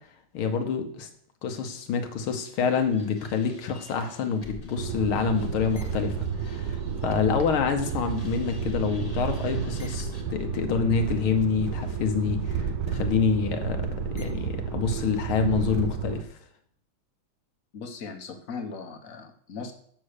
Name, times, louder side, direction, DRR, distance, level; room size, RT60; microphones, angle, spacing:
voice 1, 0.3-1.1 1.4-13.9 14.1-16.3, left 6 dB, 80° left, 6 dB, 1.9 m, -27 dB
sound 1, 2.3-7.5 7.8-14.5, left 2 dB, 25° left, 0.9 m, -44 dB
sound 2, 4.8-16.2, right 7 dB, 70° right, 0.9 m, -31 dB
voice 2, 17.7-19.7, left 4 dB, 50° left, 5 dB, 1.1 m, -38 dB
7.6 x 6.2 x 6.5 m, 0.62 s
omnidirectional pair, 2.3 m